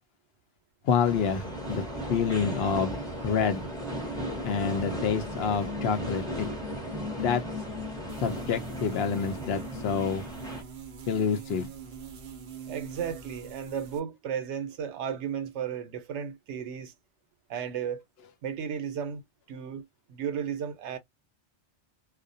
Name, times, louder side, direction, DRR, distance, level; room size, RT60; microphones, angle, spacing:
voice 1, 0.8-3.0 3.2-3.7 4.4-6.5 7.2-7.4 8.2-10.2 11.1-11.7, left 6 dB, 65° left, 0.8 m, -28 dB
sound 1, 1.0-10.6, equal, 5° left, 0.8 m, -36 dB
sound 2, 8.1-14.0, right 7 dB, 55° right, 0.6 m, -43 dB
voice 2, 12.7-16.9 17.5-18.0 18.4-19.2 19.5-19.8 20.1-21.0, right 8 dB, 80° right, 0.9 m, -34 dB
2.3 x 2.1 x 2.5 m
omnidirectional pair, 1.2 m